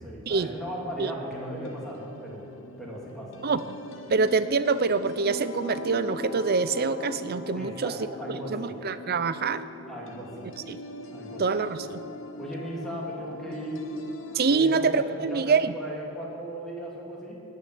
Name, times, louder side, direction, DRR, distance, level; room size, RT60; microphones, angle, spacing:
voice 1, 0.0-2.5 2.8-3.3 7.5-8.8 9.9-10.5 11.1-11.4 12.4-13.9 14.5-17.4, right 1 dB, ahead, -5 dB, 2.9 m, -37 dB
sound 1, 0.6-14.6, left 2 dB, 70° left, 0.9 m, -41 dB
voice 2, 4.1-7.9 8.5-9.6 10.7-10.8 11.4-12.0 14.3-15.7, right 4 dB, 50° right, 13 dB, 0.5 m, -25 dB
16.0 x 6.4 x 9.9 m, 2.9 s
head